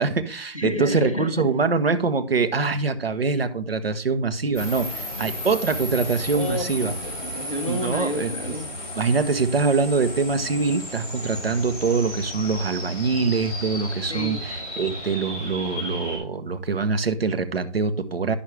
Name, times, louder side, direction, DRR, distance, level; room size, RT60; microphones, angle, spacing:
voice 1, 0.0-6.9 7.7-8.3 9.0-18.4, right 4 dB, 55° right, 0.9 m, -24 dB
voice 2, 0.5-1.4 6.3-8.7 14.0-14.4, left 1 dB, 30° left, 0.7 m, -30 dB
sound 1, 4.5-16.2, left 1 dB, 10° left, 3.0 m, -34 dB
9.9 x 6.0 x 3.2 m
hypercardioid pair, 180°, 35 cm